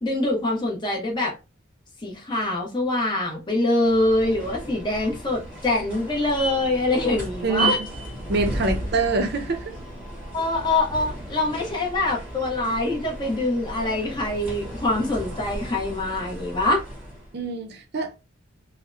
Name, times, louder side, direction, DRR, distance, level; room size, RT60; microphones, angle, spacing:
voice 1, 0.0-1.3 2.0-7.8 10.3-16.8, left 2 dB, 20° left, 0.7 m, -24 dB
sound 1, 3.8-17.3, right 1 dB, 5° right, 1.3 m, -34 dB
voice 2, 7.4-7.7 8.3-9.8 17.3-18.2, right 3 dB, 55° right, 0.4 m, -25 dB
2.7 x 2.0 x 2.3 m
head